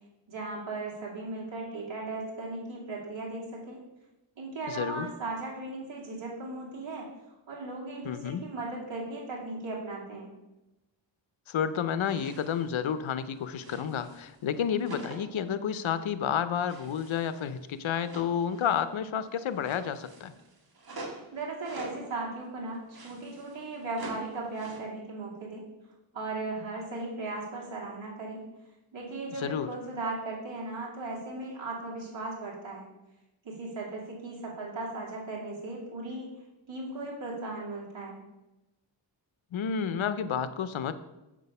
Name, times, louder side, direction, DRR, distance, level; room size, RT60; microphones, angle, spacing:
voice 1, 0.3-3.8 4.4-7.1 7.5-10.3 21.3-25.6 26.1-28.4 28.9-32.9 33.4-36.3 36.7-38.2, right 2 dB, 70° right, -5 dB, 2.6 m, -37 dB
voice 2, 4.7-5.1 8.0-8.4 11.5-20.3 29.4-29.7 39.5-40.9, left 8 dB, 80° left, 13 dB, 0.7 m, -30 dB
sound 1, 12.0-12.7 13.0-14.5 14.8-15.4 15.8-16.0 16.7-19.0 19.3-22.1 22.7-24.8, right 2 dB, 50° right, 1.8 m, -46 dB
7.6 x 6.2 x 5.4 m, 0.98 s
wide cardioid pair, 110°, 47 cm